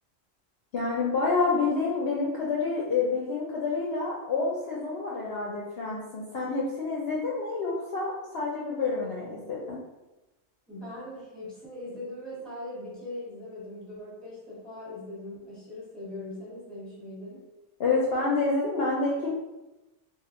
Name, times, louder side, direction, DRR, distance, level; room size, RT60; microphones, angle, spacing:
voice 1, 0.7-9.8 17.8-19.3, left 3 dB, 65° left, -4 dB, 0.7 m, -28 dB
voice 2, 10.7-17.4, left 1 dB, ahead, -7 dB, 1.0 m, -40 dB
3.3 x 2.4 x 2.5 m, 1.0 s
omnidirectional pair, 1.3 m